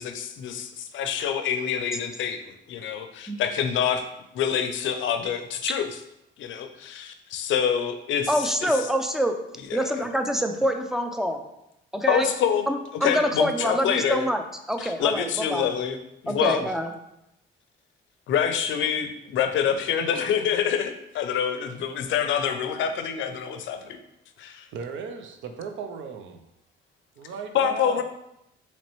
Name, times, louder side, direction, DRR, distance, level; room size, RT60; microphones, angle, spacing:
voice 1, 0.0-4.0 4.3-5.9 6.4-8.7 9.7-10.0 12.1-12.7 13.0-14.3 14.8-16.0 16.2-16.6 18.3-24.0 24.4-24.7 27.5-28.0, left 8 dB, 75° left, 8 dB, 0.5 m, -26 dB
voice 2, 8.3-9.4 9.7-11.4 11.9-12.3 12.7-15.7 16.3-16.9, equal, ahead, 5 dB, 0.4 m, -26 dB
voice 3, 24.7-26.4 27.2-28.0, right 5 dB, 75° right, 6 dB, 0.5 m, -36 dB
4.1 x 3.0 x 3.0 m, 0.82 s
cardioid pair, 90°, 20 cm